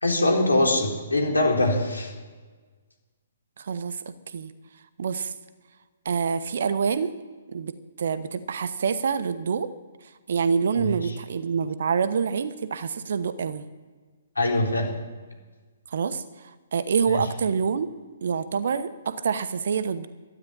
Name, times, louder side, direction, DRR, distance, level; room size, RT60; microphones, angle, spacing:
voice 1, 0.0-2.1 14.4-14.9 17.1-17.2, left 2 dB, 75° left, 1 dB, 3.9 m, -22 dB
voice 2, 3.6-4.5 5.0-5.3 6.0-7.1 7.5-9.7 10.3-13.7 15.9-17.9 18.2-20.1, right 6 dB, 55° right, 13 dB, 1.1 m, -26 dB
13.0 x 9.8 x 9.7 m, 1.4 s
figure-of-eight pair, 125°, 0 cm